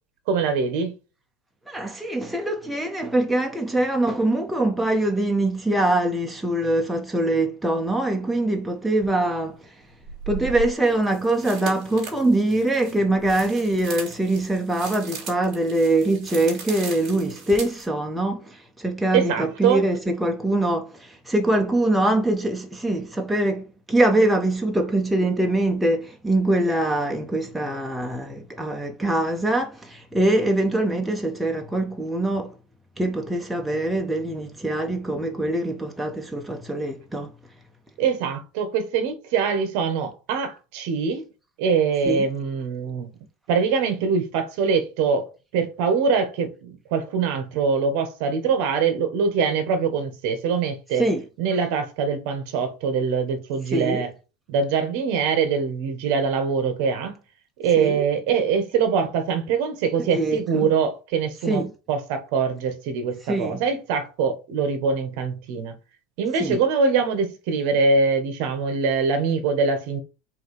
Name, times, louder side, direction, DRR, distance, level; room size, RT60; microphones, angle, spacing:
voice 1, 0.3-0.9 19.1-19.8 38.0-41.2 41.6-43.1 43.5-51.0 51.4-54.1 54.5-57.2 57.6-65.8 66.2-70.0, right 5 dB, 55° right, 1.4 m, -23 dB
voice 2, 1.7-9.7 10.3-32.5 33.0-37.3 42.1-42.2 51.0-51.2 53.7-54.0 57.8-58.0 60.0-60.7 61.5-61.7 63.3-63.6 66.4-66.6, right 1 dB, 5° right, 0.7 m, -23 dB
sound 1, 9.0-9.1 10.0-17.9, right 5 dB, 30° right, 3.4 m, -38 dB
7.5 x 2.8 x 5.1 m
supercardioid pair, 165°, 0 cm